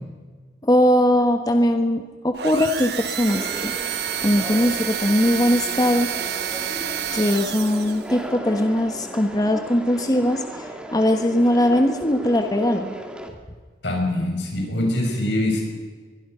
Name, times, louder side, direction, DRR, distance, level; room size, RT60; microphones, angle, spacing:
voice 1, 0.6-3.7 4.2-6.1 7.1-10.4 10.9-13.0, left 1 dB, 20° left, 6 dB, 1.3 m, -20 dB
sound 1, 2.3-8.1, right 9 dB, 65° right, 1.2 m, -29 dB
Conversation, 3.3-13.3, equal, 5° right, 2.3 m, -36 dB
voice 2, 13.8-15.6, left 1 dB, 85° left, 0 dB, 6.5 m, -23 dB
23.0 x 23.0 x 5.6 m, 1.5 s
head